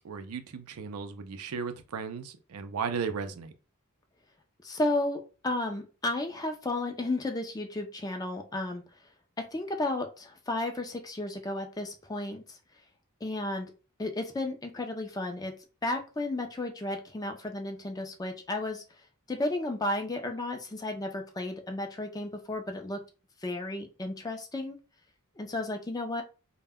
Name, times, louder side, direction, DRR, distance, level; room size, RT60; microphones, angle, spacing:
voice 1, 0.0-3.5, right 5 dB, 90° right, 0.4 m, -35 dB
voice 2, 4.6-8.8 9.5-12.6 13.2-13.7 14.0-15.5 15.8-18.8 19.3-23.0 23.4-24.8 25.4-26.2, left 2 dB, 15° left, 0.4 m, -33 dB
2.1 x 2.1 x 3.5 m
head